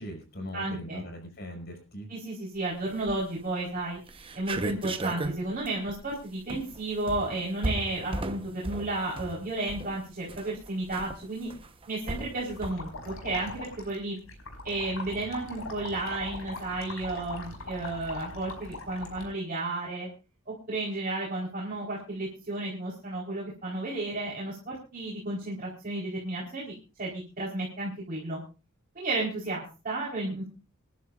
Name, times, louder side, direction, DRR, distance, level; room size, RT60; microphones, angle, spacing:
voice 1, 0.0-2.1, equal, 50° left, 3 dB, 6.3 m, -40 dB
voice 2, 0.5-1.0 2.1-4.0 4.3-11.5 11.9-14.2 14.6-20.1 20.5-28.4 28.9-30.5, right 2 dB, 40° right, -5 dB, 4.3 m, -33 dB
sound 1, 2.9-3.4 3.8-3.9 4.1-12.7, right 1 dB, 25° right, 1.0 m, -36 dB
sound 2, 12.5-19.2, left 2 dB, 85° left, 5.0 m, -41 dB
27.0 x 11.5 x 2.5 m, 0.33 s
head